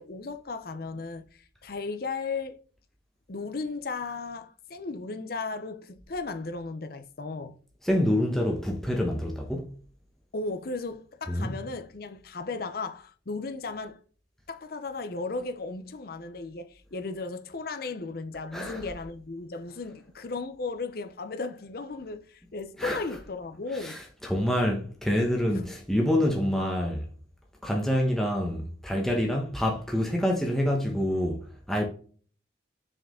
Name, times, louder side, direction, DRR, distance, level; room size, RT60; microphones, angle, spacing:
voice 1, 0.0-2.6 3.3-7.6 10.3-14.0 14.5-24.0 25.5-25.6, left 3 dB, 55° left, 0.6 m, -35 dB
voice 2, 7.8-9.7 11.3-11.5 18.5-18.8 22.8-23.0 23.7-27.1 27.6-31.8, equal, ahead, 1.0 m, -27 dB
6.2 x 4.8 x 3.7 m
head